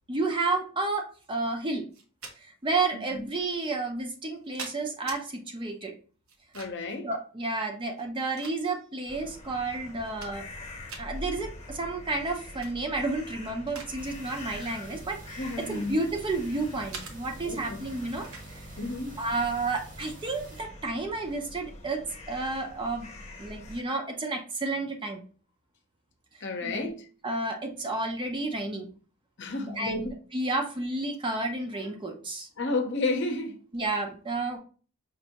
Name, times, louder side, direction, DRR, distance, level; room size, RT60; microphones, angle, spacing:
voice 1, 0.1-1.9 2.4-5.9 7.0-10.5 11.0-18.6 19.2-23.1 23.4-25.2 26.6-26.9 27.2-28.9 29.7-32.5 33.7-34.6, right 3 dB, 25° right, 0.5 m, -31 dB
sound 1, 1.9-2.4 3.3-3.4 4.1-5.2 6.3-6.9 7.9-9.0 9.5-9.6 9.9-10.6 10.9-11.1 12.4-12.7 13.2-14.0 14.2-14.5 15.3-16.4 16.9-17.2 18.2-18.5, right 4 dB, 70° right, 0.9 m, -43 dB
voice 2, 6.5-7.1 15.4-16.0 17.4-17.8 18.8-19.2 26.4-27.0 29.4-30.1 32.6-33.6, left 2 dB, 55° left, 0.7 m, -31 dB
sound 2, 9.1-23.8, left 1 dB, 30° left, 0.9 m, -45 dB
sound 3, 14.0-20.6, right 2 dB, 55° right, 1.2 m, -48 dB
5.1 x 2.6 x 2.8 m
head